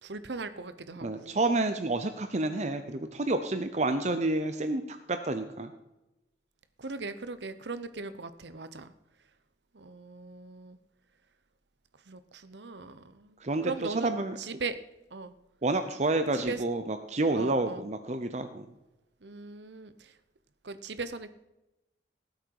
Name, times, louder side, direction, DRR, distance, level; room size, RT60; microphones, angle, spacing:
voice 1, 0.0-1.4 6.8-8.9 9.7-10.8 12.1-14.8 15.1-15.3 16.3-16.6 17.3-17.9 19.2-20.2 20.6-21.3, right 3 dB, 75° right, 12 dB, 0.9 m, -39 dB
voice 2, 1.0-5.7 13.4-14.4 15.6-18.7, right 2 dB, 40° right, 8 dB, 0.7 m, -29 dB
18.5 x 8.0 x 4.7 m, 0.95 s
head